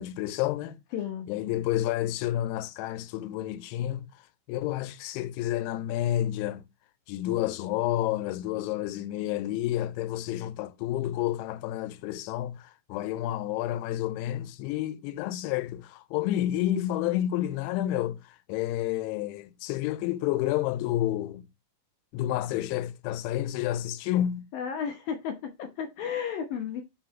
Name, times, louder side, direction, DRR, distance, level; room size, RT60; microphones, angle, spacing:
voice 1, 0.0-0.8 1.3-4.1 4.5-6.7 7.1-21.4 22.1-24.5, left 13 dB, 90° left, 3.0 m, -30 dB
voice 2, 0.9-1.3 24.5-26.8, left 7 dB, 70° left, 2.3 m, -33 dB
6.5 x 3.9 x 5.8 m
omnidirectional pair, 5.3 m